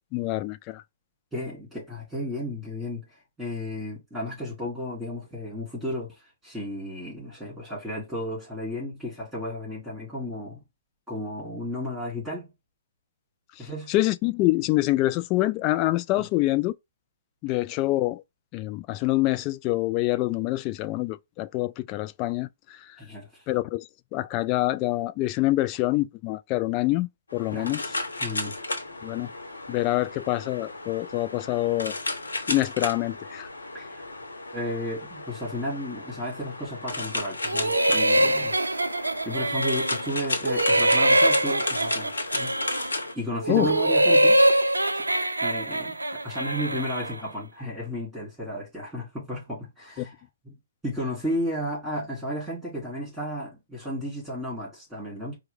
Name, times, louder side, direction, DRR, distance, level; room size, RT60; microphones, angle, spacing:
voice 1, 0.1-0.8 13.9-16.7 17.4-18.2 18.5-22.8 23.5-27.8 29.0-29.3 29.7-31.9 32.5-33.5 43.5-43.7 50.0-50.1, left 18 dB, 30° left, 0.3 m, -26 dB
voice 2, 1.3-3.0 3.4-6.1 6.4-10.6 11.1-12.5 13.6-13.9 23.0-23.4 27.5-27.7 28.2-28.5 33.7-34.0 34.5-38.5 39.2-42.5 43.1-44.4 45.4-50.2 50.4-50.5 50.8-55.4, equal, 5° right, 2.7 m, -33 dB
sound 1, 27.3-43.1, left 2 dB, 80° left, 0.8 m, -34 dB
sound 2, 37.5-40.1 40.4-43.0 43.4-47.2, right 1 dB, 90° right, 0.5 m, -23 dB
4.4 x 2.1 x 3.5 m
figure-of-eight pair, 125°, 0 cm